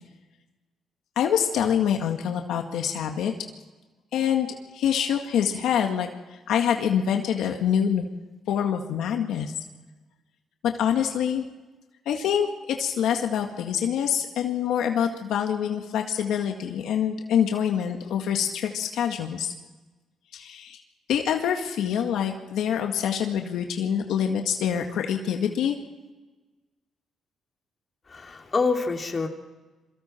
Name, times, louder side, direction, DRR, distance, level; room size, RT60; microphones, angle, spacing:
voice 1, 1.2-3.3 4.1-4.5 4.7-8.1 8.5-9.5 10.6-11.5 12.1-19.5 20.3-20.8 21.1-25.8, left 8 dB, 80° left, 3 dB, 1.8 m, -25 dB
voice 2, 28.1-29.3, left 4 dB, 35° left, 2 dB, 2.9 m, -26 dB
28.0 x 23.5 x 4.5 m, 1.2 s
cardioid pair, 90°, 0 cm